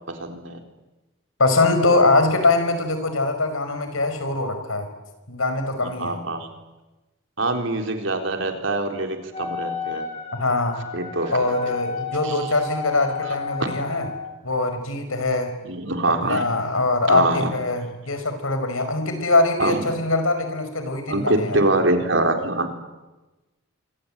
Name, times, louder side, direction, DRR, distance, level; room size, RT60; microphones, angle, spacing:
voice 1, 0.1-0.6 5.8-6.5 7.4-10.1 10.9-11.5 12.2-12.5 15.6-16.4 17.1-17.5 19.6-19.8 21.1-22.8, right 2 dB, 65° right, 5 dB, 3.9 m, -24 dB
voice 2, 1.4-4.9 5.3-6.2 10.3-10.9 11.3-14.1 14.4-15.5 16.2-21.6, left 2 dB, 85° left, 8 dB, 5.4 m, -22 dB
Wind instrument woodwind instrument, 9.3-14.4, left 4 dB, 30° left, 7.5 m, -32 dB
25.5 x 25.5 x 9.0 m, 1.1 s
head